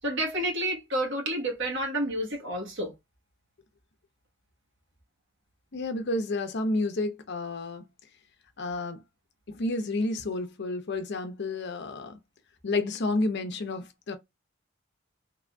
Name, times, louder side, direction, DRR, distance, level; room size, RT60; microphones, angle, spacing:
voice 1, 0.0-2.9, right 1 dB, 60° right, 1.3 m, -30 dB
voice 2, 5.7-7.8 8.6-9.0 9.5-12.2 12.6-14.1, left 2 dB, 60° left, 0.6 m, -30 dB
3.4 x 2.5 x 2.2 m
head